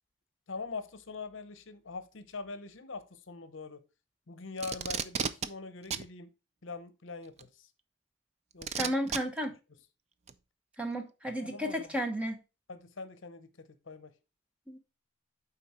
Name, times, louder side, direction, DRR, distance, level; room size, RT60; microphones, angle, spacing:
voice 1, 0.5-3.8 4.3-6.3 6.6-7.7 8.5-8.9 11.4-11.9 12.7-14.1, left 4 dB, 65° left, 0.8 m, -43 dB
Packing tape duct tape, 4.6-5.5 5.9-6.1 7.4-7.5 8.6-9.2 10.3-10.4, right 6 dB, 30° right, 0.4 m, -32 dB
voice 2, 8.7-9.5 10.8-12.4 14.7-14.8, equal, 5° right, 0.9 m, -33 dB
9.1 x 3.9 x 4.3 m
head